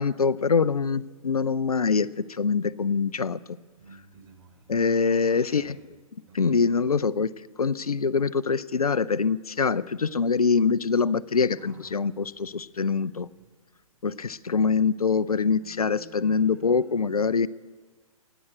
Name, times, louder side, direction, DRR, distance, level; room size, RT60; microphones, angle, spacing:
voice 1, 0.0-3.4 4.7-5.8 6.3-7.3 7.6-13.3 14.0-17.5, left 5 dB, 85° left, 18 dB, 0.5 m, -24 dB
voice 2, 3.7-4.8 5.1-5.9 6.3-6.8 11.3-13.5 15.4-17.2, right 4 dB, 35° right, 1 dB, 4.3 m, -53 dB
16.5 x 10.0 x 8.1 m, 1.4 s
figure-of-eight pair, 125°, 19 cm